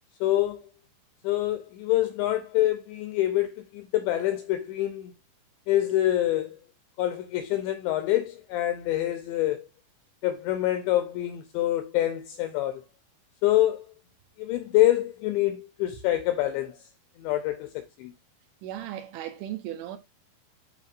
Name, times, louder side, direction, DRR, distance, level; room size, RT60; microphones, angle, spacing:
voice 1, 0.2-0.6 1.2-5.1 5.7-6.6 7.0-9.7 10.2-12.8 13.4-13.9 14.4-16.9 17.2-18.1, left 14 dB, 85° left, 2.6 m, -26 dB
voice 2, 18.6-20.0, right 12 dB, 80° right, 2.9 m, -36 dB
11.0 x 4.5 x 2.5 m
omnidirectional pair, 6.0 m